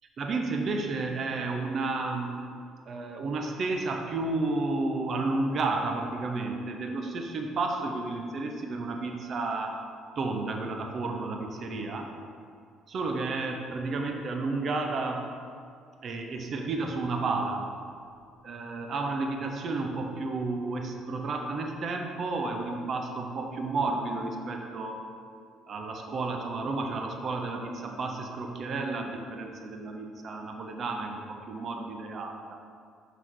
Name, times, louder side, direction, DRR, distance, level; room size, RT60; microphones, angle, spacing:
voice 1, 0.2-2.4 2.9-9.7 10.2-12.1 12.9-15.3 16.0-17.7 18.4-25.0 25.7-32.4, right 3 dB, 50° right, 3 dB, 0.8 m, -31 dB
5.9 x 5.7 x 4.7 m, 2.3 s
supercardioid pair, 75°, 0 cm